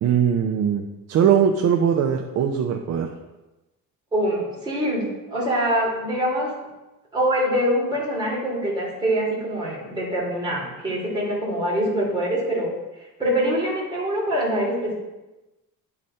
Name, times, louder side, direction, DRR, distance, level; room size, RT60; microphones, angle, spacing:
voice 1, 0.0-3.1, right 8 dB, 45° right, 3 dB, 0.6 m, -21 dB
voice 2, 4.1-6.5 7.1-12.7 13.2-14.9, equal, 15° right, -5 dB, 2.8 m, -24 dB
10.5 x 4.0 x 4.3 m, 1.0 s
cardioid pair, 155°, 35 cm